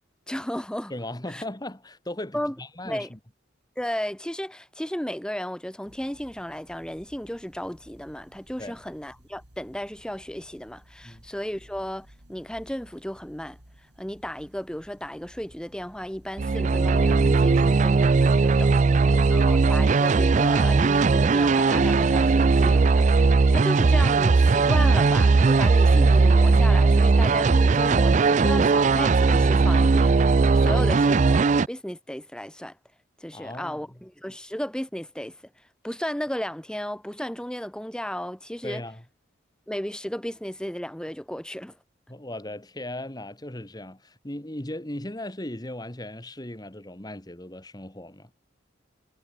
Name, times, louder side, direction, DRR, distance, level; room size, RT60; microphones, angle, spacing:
voice 1, 0.3-0.9 1.3-1.4 2.3-2.6 2.8-3.1 3.8-13.6 14.0-18.7 19.0-30.2 30.5-32.8 33.2-38.8 39.7-41.8, equal, 5° left, 0.8 m, -34 dB
voice 2, 0.9-3.2 8.6-8.8 11.0-11.2 18.7-19.6 30.6-30.9 33.3-33.8 38.6-39.0 42.1-48.3, left 1 dB, 20° left, 1.8 m, -37 dB
sound 1, 5.9-23.0, equal, 55° right, 5.3 m, -55 dB
sound 2, 16.4-31.7, right 4 dB, 40° right, 0.4 m, -19 dB
head